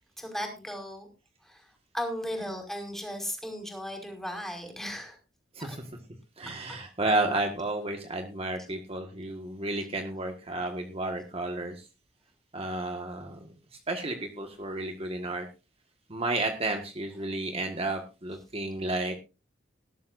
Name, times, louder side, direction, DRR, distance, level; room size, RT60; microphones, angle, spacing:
voice 1, 0.2-1.1 1.4-1.7 1.9-5.2 5.6-5.8, equal, ahead, 3 dB, 5.0 m, -36 dB
voice 2, 6.4-11.9 12.5-13.5 13.9-15.5 16.1-19.1, right 2 dB, 35° right, 4 dB, 1.6 m, -32 dB
19.0 x 12.5 x 2.6 m, 0.31 s
head